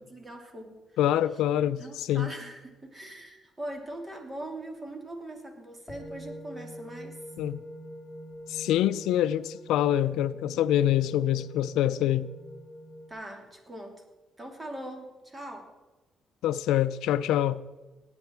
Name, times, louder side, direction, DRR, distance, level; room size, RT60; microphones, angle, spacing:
voice 1, 0.1-1.0 1.8-7.2 13.1-14.0 14.4-15.7, right 1 dB, 20° right, 3.0 m, -41 dB
voice 2, 1.0-2.3 7.4-7.6 8.5-12.3 16.4-17.6, left 12 dB, 90° left, 0.4 m, -25 dB
sound 1, 5.9-13.1, equal, 15° left, 2.7 m, -45 dB
19.0 x 8.9 x 4.6 m
cardioid pair, 90°, 0 cm